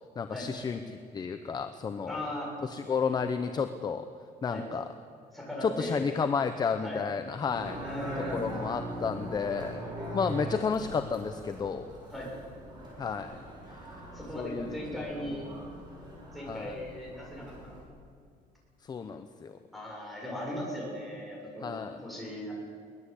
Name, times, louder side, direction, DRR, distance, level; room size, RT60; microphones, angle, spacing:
voice 1, 0.2-2.3 2.6-4.1 4.4-4.9 5.6-7.8 8.3-9.9 10.1-11.9 13.0-13.4 14.3-15.0 16.5-16.7 18.8-19.6 21.6-22.0, left 5 dB, 25° left, 8 dB, 0.9 m, -32 dB
voice 2, 2.1-2.5 4.5-4.7 5.3-6.0 6.8-7.0 7.8-8.5 12.1-12.3 14.1-15.5 16.3-17.8 19.7-22.5, equal, ahead, -4 dB, 7.3 m, -38 dB
sound 1, 7.5-17.8, right 1 dB, 25° right, 7.0 m, -41 dB
23.0 x 19.5 x 8.5 m, 2.2 s
cardioid pair, 175°, 16 cm